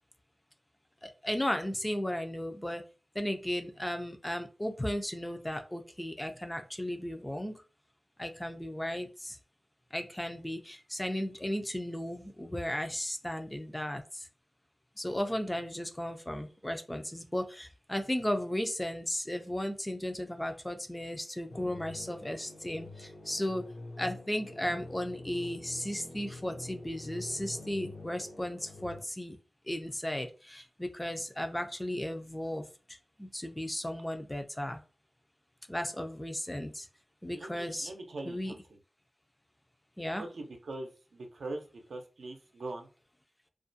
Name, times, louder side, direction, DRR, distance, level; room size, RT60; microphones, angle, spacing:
voice 1, 1.0-2.8 3.2-7.5 8.2-9.4 9.9-14.2 15.0-23.6 24.0-29.4 29.7-32.6 33.2-34.8 35.7-36.9 37.2-37.9 38.3-38.5 40.0-40.2, left 1 dB, 15° left, 6 dB, 0.3 m, -35 dB
sound 1, 21.5-29.0, left 2 dB, 75° left, 0.7 m, -46 dB
voice 2, 37.3-38.6 40.2-42.9, right 2 dB, 85° right, 3 dB, 0.5 m, -42 dB
2.4 x 2.1 x 2.6 m, 0.34 s
wide cardioid pair, 95°, 0 cm